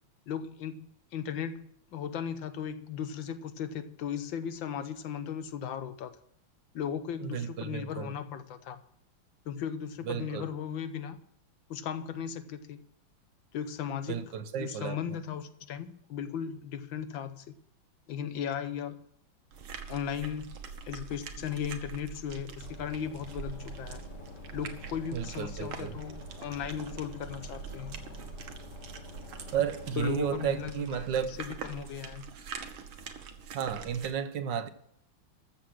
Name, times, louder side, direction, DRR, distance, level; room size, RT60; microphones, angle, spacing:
voice 1, 0.3-6.2 6.7-8.8 9.5-11.2 11.7-12.8 13.5-14.3 14.6-17.6 18.1-19.0 19.9-24.0 24.5-28.0 30.0-31.1 31.4-32.3, left 8 dB, 70° left, 1.5 m, -37 dB
voice 2, 7.2-8.1 10.1-10.5 14.1-15.2 25.1-26.0 29.5-31.4 33.5-34.7, right 8 dB, 65° right, 1.5 m, -33 dB
sound 1, 19.5-34.1, right 6 dB, 80° right, 2.1 m, -44 dB
sound 2, 22.6-30.6, left 4 dB, 55° left, 2.0 m, -48 dB
14.0 x 7.4 x 6.1 m
omnidirectional pair, 2.3 m